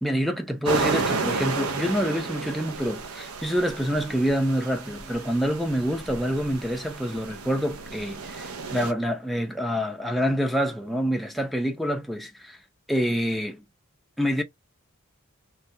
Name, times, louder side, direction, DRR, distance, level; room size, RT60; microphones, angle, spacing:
voice 1, 0.0-12.6 12.9-13.6 14.2-14.4, equal, ahead, 0.4 m, -27 dB
sound 1, 0.7-8.9, right 4 dB, 85° right, 0.6 m, -32 dB
3.2 x 2.3 x 2.7 m
head